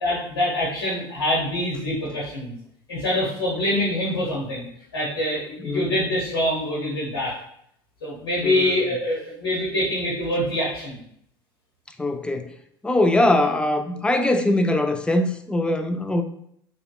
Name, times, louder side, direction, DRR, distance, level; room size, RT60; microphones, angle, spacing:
voice 1, 0.0-2.5 2.9-4.7 4.9-7.4 8.0-11.0, left 1 dB, 85° left, 0.9 m, -25 dB
voice 2, 8.4-8.8 12.0-12.5 12.8-16.2, left 1 dB, 10° left, 0.4 m, -22 dB
5.1 x 2.2 x 2.2 m
hypercardioid pair, 70°, 13 cm